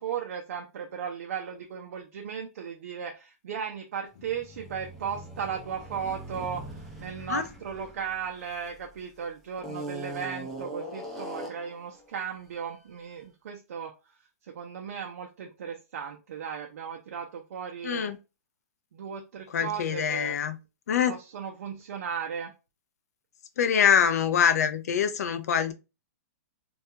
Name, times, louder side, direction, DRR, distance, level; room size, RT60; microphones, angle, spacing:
voice 1, 0.0-18.1 18.9-20.4 21.1-22.5, right 7 dB, 65° right, 0.4 m, -36 dB
sound 1, 4.1-9.0 9.6-11.8, right 1 dB, ahead, 0.5 m, -41 dB
voice 2, 17.8-18.2 19.5-20.6 20.9-21.1 23.6-25.7, left 8 dB, 80° left, 0.4 m, -24 dB
2.3 x 2.2 x 2.7 m
hypercardioid pair, 155°, 8 cm